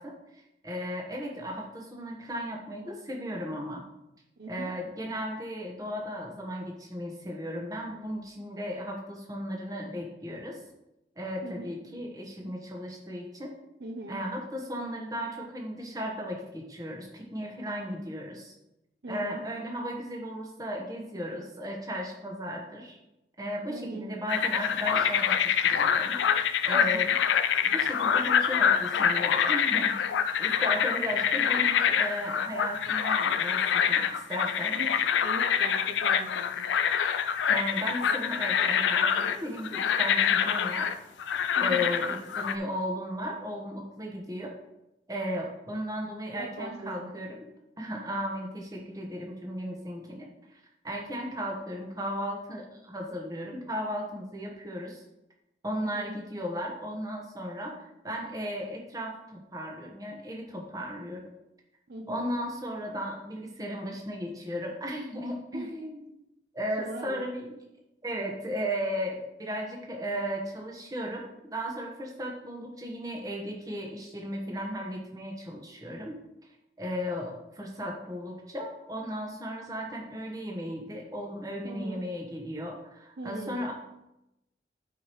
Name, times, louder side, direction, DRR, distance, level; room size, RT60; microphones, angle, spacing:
voice 1, 0.0-3.8 4.5-10.6 11.2-13.5 14.1-18.5 19.1-23.0 23.4-26.2 26.6-27.1 27.6-29.9 30.4-34.0 34.3-34.8 37.5-40.9 41.6-44.5 45.1-47.5 47.8-50.2 50.5-55.0 55.6-61.2 62.1-66.1 66.5-67.5 68.0-71.2 71.5-76.2 76.8-83.7, equal, 20° right, 0 dB, 1.1 m, -35 dB
voice 2, 4.4-4.7 11.4-11.7 13.8-14.2 19.0-19.4 23.7-24.1 26.7-27.1 34.8-34.9 35.2-36.7 41.6-41.9 46.3-47.1 55.8-56.1 61.9-62.3 65.5-65.8 66.8-67.3 81.6-82.1 83.2-83.7, right 2 dB, 60° right, 3 dB, 0.6 m, -40 dB
sound 1, 24.3-42.5, left 8 dB, 80° left, 0.4 m, -26 dB
9.4 x 4.7 x 3.0 m, 0.90 s
head